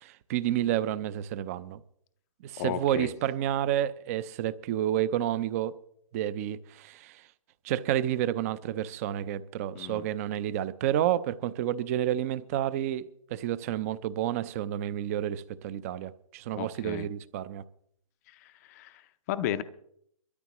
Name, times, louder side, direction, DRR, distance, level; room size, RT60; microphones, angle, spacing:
voice 1, 0.0-1.8 2.4-5.7 6.1-7.2 7.6-13.0 13.3-17.6, right 11 dB, 25° right, 0.6 m, -30 dB
voice 2, 2.6-3.1 9.7-10.0 16.5-17.1 18.3-19.6, left 10 dB, 25° left, 0.5 m, -34 dB
23.0 x 13.5 x 3.0 m
hypercardioid pair, 150°, 19 cm